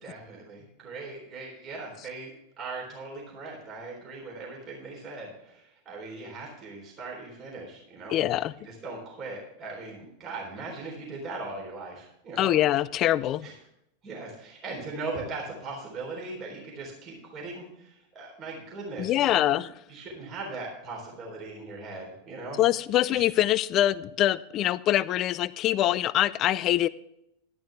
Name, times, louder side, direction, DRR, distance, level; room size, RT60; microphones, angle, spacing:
voice 1, 0.0-2.3 2.6-8.2 8.6-12.5 13.4-13.5 14.0-19.6 19.9-22.6 23.1-23.2, right 3 dB, 30° right, 3.7 m, -39 dB
voice 2, 8.1-8.5 12.4-13.5 19.0-19.7 22.6-26.9, left 13 dB, 35° left, 0.4 m, -24 dB
12.5 x 11.0 x 3.4 m
figure-of-eight pair, 90°, 0 cm